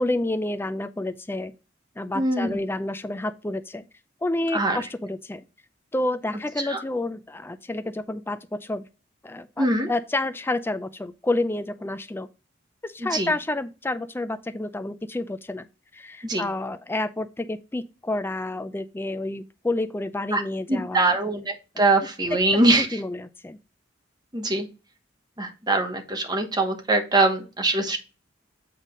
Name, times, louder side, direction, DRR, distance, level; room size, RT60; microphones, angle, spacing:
voice 1, 0.0-1.5 2.0-3.9 4.2-5.4 5.9-8.8 9.2-12.3 12.8-15.7 15.9-21.1 22.8-23.6, left 2 dB, 10° left, 0.4 m, -29 dB
voice 2, 2.1-2.5 4.5-4.8 6.6-6.8 9.6-9.9 13.0-13.3 16.2-16.4 20.3-20.4 20.7-23.0 24.3-24.7 25.4-28.0, right 2 dB, 20° right, 1.2 m, -23 dB
8.1 x 3.9 x 3.7 m
head